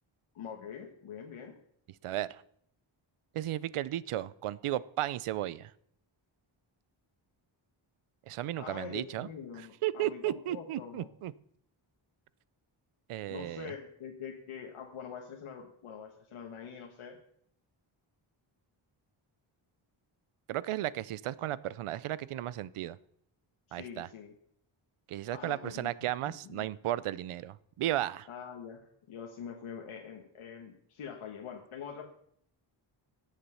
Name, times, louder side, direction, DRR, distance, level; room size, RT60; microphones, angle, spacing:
voice 1, 0.3-1.5 8.6-11.1 13.3-17.2 23.7-24.3 25.3-25.9 26.3-26.7 28.3-28.8 29.1-32.1, left 7 dB, 90° left, 1 dB, 1.4 m, -44 dB
voice 2, 2.0-2.4 3.3-5.7 8.3-9.3 9.8-11.3 13.1-13.7 20.5-23.0 23.7-24.1 25.1-28.3, right 13 dB, 85° right, 19 dB, 0.6 m, -34 dB
16.0 x 7.4 x 5.6 m, 0.67 s
cardioid pair, 95°, 49 cm